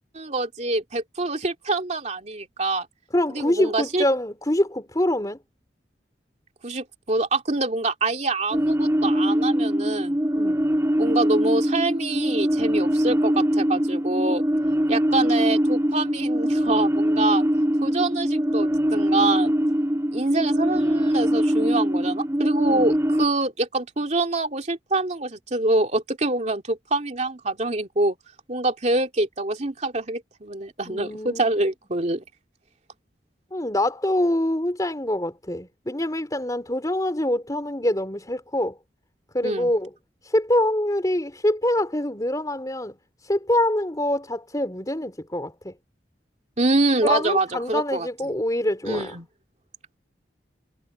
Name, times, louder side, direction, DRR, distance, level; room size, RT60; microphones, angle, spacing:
voice 1, 0.1-2.9 3.3-4.0 6.6-10.2 11.0-14.4 14.9-17.4 17.8-19.5 20.1-28.2 28.5-32.2 39.4-39.7 46.6-48.1 48.8-49.3, right 2 dB, 40° right, 2.7 m, -25 dB
voice 2, 3.1-5.4 10.3-10.6 22.7-23.0 30.9-31.5 33.5-38.8 39.3-39.9 40.2-45.7 47.0-49.2, left 1 dB, 20° left, 3.6 m, -25 dB
sound 1, 8.5-23.3, equal, 15° right, 3.6 m, -22 dB
head